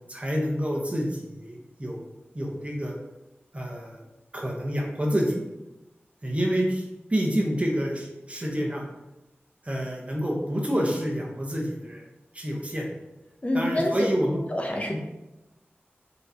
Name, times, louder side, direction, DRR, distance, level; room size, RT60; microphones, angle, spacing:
voice 1, 0.1-2.9 3.5-4.0 4.3-5.4 6.2-6.8 7.1-8.8 9.6-12.0 12.3-12.9 13.5-14.4 14.9-15.0, equal, 30° right, -1 dB, 1.0 m, -28 dB
voice 2, 13.4-14.1 14.5-15.0, left 1 dB, 30° left, 2 dB, 0.7 m, -26 dB
4.0 x 3.7 x 2.8 m, 0.98 s
cardioid pair, 40°, 4 cm